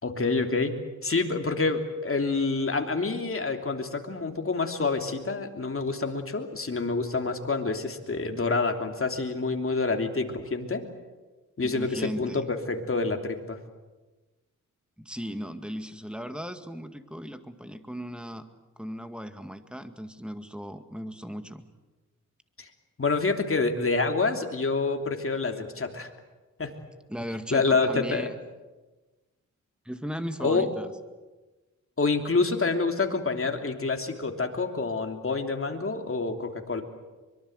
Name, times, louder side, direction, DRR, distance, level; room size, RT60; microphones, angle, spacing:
voice 1, 0.0-0.7 1.0-10.8 11.6-13.6 22.6-22.7 23.0-26.1 26.6-26.7 27.5-28.3 30.4-30.7 32.0-36.8, left 3 dB, 45° left, 4 dB, 3.1 m, -27 dB
voice 2, 11.6-12.4 15.0-18.5 18.8-21.7 27.1-28.4 29.9-30.9, equal, 5° right, 8 dB, 2.0 m, -37 dB
24.0 x 23.0 x 8.1 m, 1.2 s
cardioid pair, 75°, 31 cm